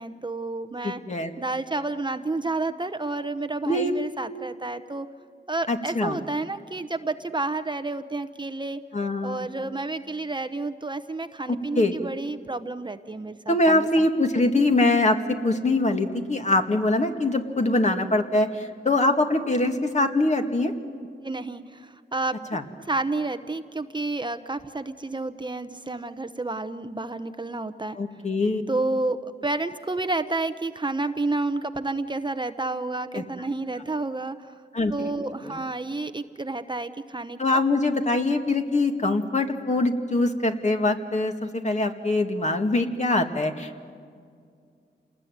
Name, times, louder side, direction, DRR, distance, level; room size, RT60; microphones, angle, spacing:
voice 1, 0.0-1.0 1.4-5.1 5.5-8.8 9.2-14.1 21.2-22.4 22.8-28.0 28.7-34.5 34.9-37.6, right 2 dB, 25° right, 9 dB, 0.8 m, -30 dB
voice 2, 0.8-1.3 3.7-3.9 5.7-6.2 8.9-9.5 11.5-12.0 13.5-20.7 22.5-22.6 28.0-28.6 33.1-33.2 34.7-35.1 35.4-35.6 37.4-43.9, left 2 dB, 40° left, 5 dB, 2.1 m, -23 dB
28.5 x 20.0 x 9.4 m, 2.2 s
wide cardioid pair, 95°, 19 cm